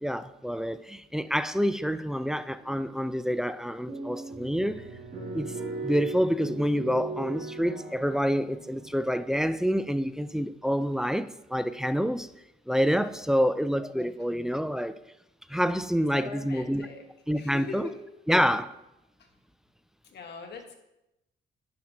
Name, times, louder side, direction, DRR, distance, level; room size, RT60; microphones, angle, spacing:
voice 1, 0.0-4.8 5.3-5.5 5.8-12.3 12.7-14.9 15.5-16.9 17.3-17.9 18.3-18.7, equal, 5° right, 0.3 m, -27 dB
sound 1, 2.6-3.1 3.5-3.6 3.9-9.1, right 3 dB, 55° right, 2.9 m, -38 dB
voice 2, 16.1-17.0 17.3-18.0 19.2-19.3 20.1-20.8, left 4 dB, 60° left, 1.4 m, -41 dB
10.5 x 6.0 x 2.8 m
cardioid pair, 90°, 20 cm